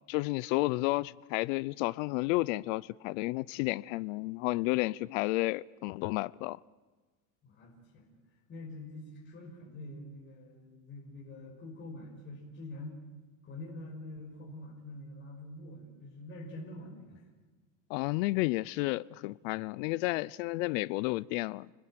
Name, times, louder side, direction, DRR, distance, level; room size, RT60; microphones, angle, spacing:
voice 1, 0.1-6.6 17.9-21.7, left 21 dB, 75° left, 0.7 m, -31 dB
voice 2, 7.4-8.2 8.5-13.0 13.4-17.3, left 1 dB, 30° left, 5.5 m, -46 dB
29.0 x 20.5 x 7.7 m
cardioid pair, 155°, 39 cm